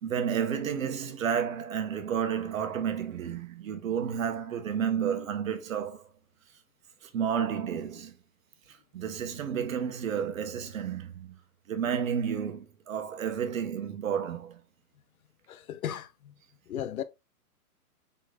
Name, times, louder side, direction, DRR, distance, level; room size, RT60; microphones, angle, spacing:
voice 1, 0.0-6.1 7.1-8.2 8.9-11.4 11.7-14.6, right 8 dB, 60° right, 1.1 m, -31 dB
voice 2, 15.5-16.3 16.7-17.0, left 10 dB, 65° left, 0.7 m, -35 dB
4.4 x 4.0 x 2.4 m
hypercardioid pair, 160°, 46 cm